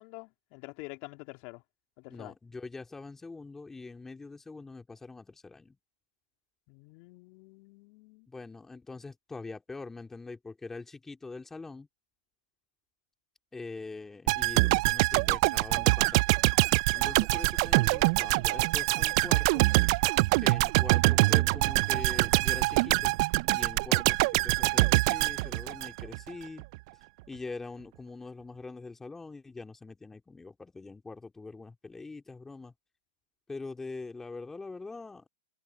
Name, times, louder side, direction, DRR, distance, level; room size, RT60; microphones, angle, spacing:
voice 1, 0.0-1.6 2.0-2.3 6.7-8.3, left 27 dB, 45° left, 3.1 m, -47 dB
voice 2, 2.1-5.8 8.3-11.9 13.5-16.4 16.9-19.7 20.4-23.2 23.5-26.6 27.3-32.7 33.5-35.3, left 3 dB, 10° left, 2.3 m, -43 dB
sound 1, 14.3-26.3 26.6-26.8, right 23 dB, 50° right, 0.4 m, -25 dB
hypercardioid pair, 120°, 3 cm